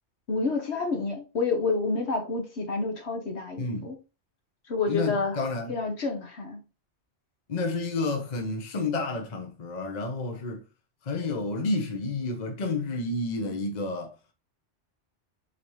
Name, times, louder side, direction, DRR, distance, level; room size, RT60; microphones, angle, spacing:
voice 1, 0.3-4.0 4.7-5.4 5.7-6.6, left 4 dB, 65° left, 1.4 m, -29 dB
voice 2, 3.6-3.9 4.9-5.8 7.5-10.6 11.1-14.1, left 3 dB, 40° left, 0.9 m, -30 dB
4.8 x 3.6 x 3.0 m
omnidirectional pair, 1.2 m